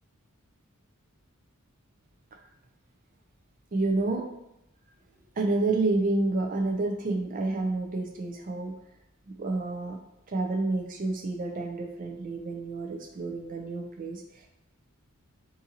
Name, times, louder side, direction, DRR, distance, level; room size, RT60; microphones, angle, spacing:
voice 1, 3.7-4.2 5.4-8.7 9.3-10.0 10.3-14.5, right 2 dB, 40° right, 3 dB, 0.4 m, -29 dB
2.7 x 2.5 x 2.7 m, 0.84 s
head